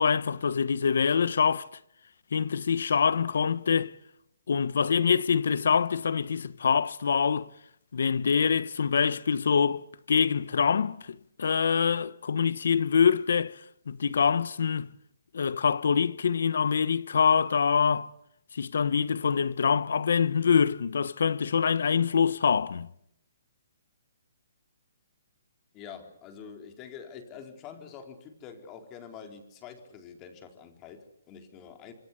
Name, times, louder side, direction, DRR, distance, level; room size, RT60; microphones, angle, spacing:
voice 1, 0.0-1.7 2.3-3.9 4.5-7.5 7.9-13.6 13.9-14.9 15.3-18.1 18.5-22.9, left 6 dB, 75° left, 1.1 m, -25 dB
voice 2, 25.7-31.9, left 7 dB, 25° left, 4.0 m, -46 dB
27.0 x 23.0 x 8.4 m
hypercardioid pair, 160°, 0 cm